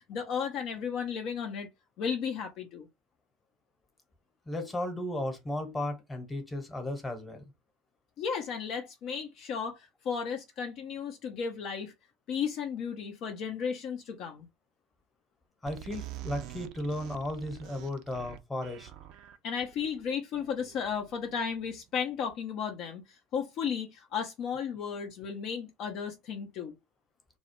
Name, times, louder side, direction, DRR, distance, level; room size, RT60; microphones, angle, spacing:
voice 1, 0.1-1.7 2.0-2.9 8.2-9.8 10.0-11.9 12.3-14.5 19.4-23.0 23.3-26.7, left 6 dB, 50° left, 0.5 m, -34 dB
voice 2, 4.5-7.4 15.6-18.9, left 1 dB, 15° left, 0.9 m, -35 dB
sound 1, 15.7-22.1, right 13 dB, 55° right, 0.4 m, -46 dB
2.2 x 2.0 x 3.0 m
hypercardioid pair, 75°, 0 cm